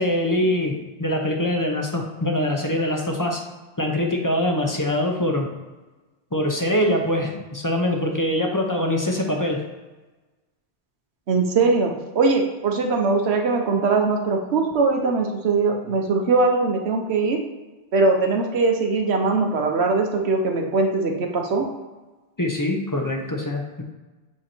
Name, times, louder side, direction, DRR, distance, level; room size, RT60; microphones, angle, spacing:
voice 1, 0.0-3.4 3.8-5.5 6.3-9.7 22.4-23.8, left 1 dB, 20° left, 1 dB, 0.6 m, -23 dB
voice 2, 11.3-17.4 17.9-21.6, right 3 dB, 65° right, 3 dB, 1.1 m, -21 dB
7.9 x 2.8 x 4.3 m, 1.2 s
omnidirectional pair, 1.2 m